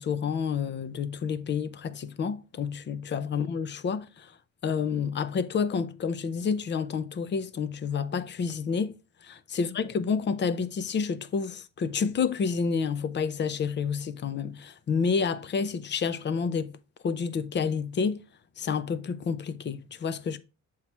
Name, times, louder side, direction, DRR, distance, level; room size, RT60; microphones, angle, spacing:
voice 1, 0.0-4.4 4.6-9.0 9.2-16.8 17.0-18.2 18.6-20.4, left 6 dB, 35° left, 0.5 m, -29 dB
7.3 x 3.0 x 4.5 m
cardioid pair, 130°, 31 cm